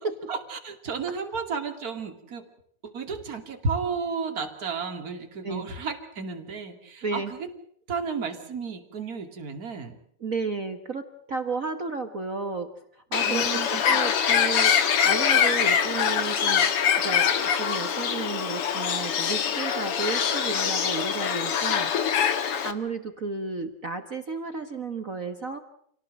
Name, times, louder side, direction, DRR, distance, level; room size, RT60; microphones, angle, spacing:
voice 1, 0.0-2.5 2.8-7.5 7.9-10.0 13.2-13.8, right 4 dB, 30° right, 5 dB, 2.7 m, -33 dB
voice 2, 10.2-16.7 17.0-21.9 22.2-25.6, right 4 dB, 55° right, 8 dB, 0.9 m, -33 dB
Bird, 13.1-22.7, left 8 dB, 55° left, 2.2 m, -24 dB
28.0 x 18.0 x 7.6 m, 0.67 s
omnidirectional pair, 3.5 m